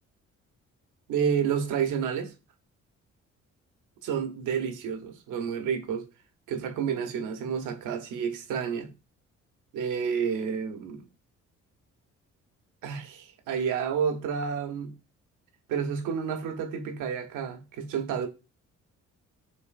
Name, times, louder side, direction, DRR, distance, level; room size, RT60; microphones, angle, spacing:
voice 1, 1.1-2.3 4.0-6.1 6.5-8.9 9.7-11.0 12.8-14.9 15.7-18.3, right 7 dB, 85° right, 0.9 m, -30 dB
5.4 x 3.1 x 2.5 m
cardioid pair, 90°, 30 cm